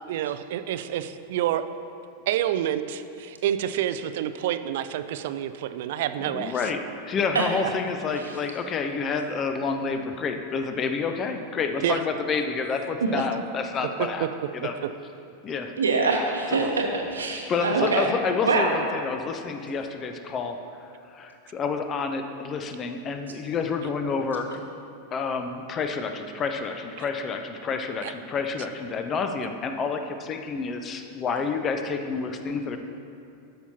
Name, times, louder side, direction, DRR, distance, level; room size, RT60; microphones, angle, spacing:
voice 1, 0.1-1.6 2.3-6.6 11.8-12.0 13.1-13.2 14.2-14.3 16.6-16.7 17.8-17.9 28.0-28.1, right 11 dB, 55° right, 11 dB, 0.3 m, -28 dB
voice 2, 6.2-6.8 7.1-14.3 14.5-14.7 15.4-15.7 16.5-16.6 17.5-20.6 21.1-24.6 25.1-32.8, left 5 dB, 25° left, 6 dB, 0.5 m, -29 dB
voice 3, 15.8-18.1 18.5-18.7, right 4 dB, 70° right, 1 dB, 0.9 m, -24 dB
12.5 x 5.6 x 2.8 m, 2.6 s
figure-of-eight pair, 90°, 0 cm